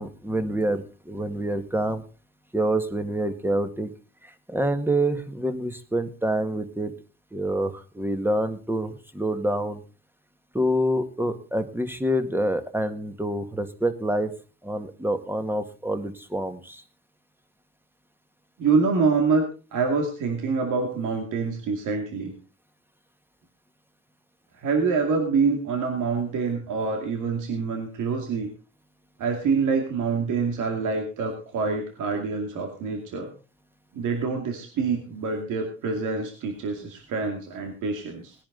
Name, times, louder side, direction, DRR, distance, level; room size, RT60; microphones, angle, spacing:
voice 1, 0.0-2.0 2.5-3.9 4.5-6.9 7.3-9.8 10.5-14.3 14.6-16.8, right 1 dB, 5° right, 8 dB, 1.8 m, -27 dB
voice 2, 18.6-22.3 24.5-28.5 29.2-33.3 33.9-38.4, right 4 dB, 85° right, 3 dB, 2.5 m, -26 dB
19.0 x 10.5 x 3.9 m, 0.35 s
cardioid pair, 90°, 30 cm